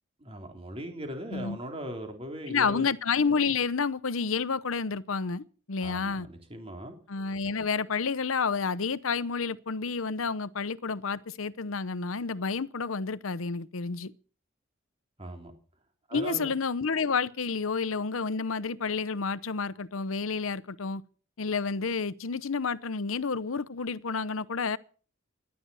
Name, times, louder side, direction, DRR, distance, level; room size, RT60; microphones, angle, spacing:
voice 1, 0.2-2.9 5.8-7.0 15.2-15.5 16.1-16.5, right 1 dB, 30° right, 3.5 m, -39 dB
voice 2, 2.5-6.3 7.1-14.1 16.1-21.0 21.4-24.8, left 5 dB, 90° left, 0.8 m, -30 dB
18.0 x 11.5 x 5.6 m
head